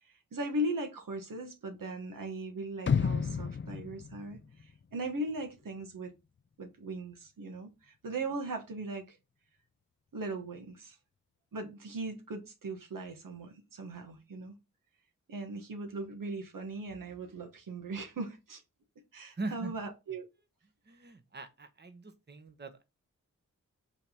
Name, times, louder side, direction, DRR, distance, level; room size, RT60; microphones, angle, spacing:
voice 1, 0.3-6.1 6.6-9.2 10.1-11.0 11.5-14.6 15.3-18.6 19.1-20.3, right 2 dB, 85° right, 1.4 m, -39 dB
sound 1, 2.9-5.0 5.4-5.5, left 6 dB, 40° left, 0.5 m, -32 dB
voice 2, 19.4-19.7 20.9-22.8, right 2 dB, 30° right, 1.1 m, -41 dB
5.6 x 3.5 x 5.7 m
cardioid pair, 55°, 32 cm